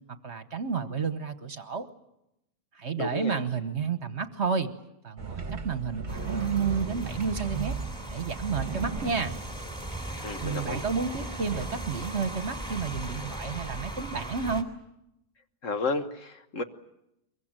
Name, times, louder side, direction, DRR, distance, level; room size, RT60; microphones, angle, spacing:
voice 1, 0.1-1.9 2.7-4.7 5.0-7.8 8.1-9.3 10.4-14.7, right 5 dB, 50° right, 10 dB, 1.4 m, -31 dB
voice 2, 3.0-3.4 10.2-10.8 15.6-16.6, left 3 dB, 55° left, 8 dB, 1.6 m, -32 dB
sound 1, 5.2-12.0, right 5 dB, 30° right, 1.5 m, -38 dB
Rain, 6.1-14.6, right 1 dB, 5° left, 3.0 m, -38 dB
23.5 x 22.5 x 9.0 m, 0.84 s
omnidirectional pair, 1.6 m